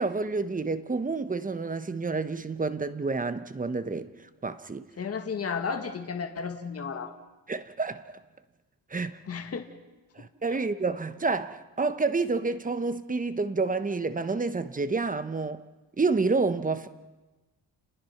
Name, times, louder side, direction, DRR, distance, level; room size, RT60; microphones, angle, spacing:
voice 1, 0.0-4.1 4.4-4.9 7.5-8.0 8.9-9.2 10.2-15.6 16.0-16.9, right 3 dB, 20° right, 1.0 m, -29 dB
voice 2, 5.0-7.1 9.3-9.7 10.5-10.6, left 5 dB, 35° left, 1.8 m, -33 dB
29.5 x 20.5 x 5.9 m
cardioid pair, 130°, 41 cm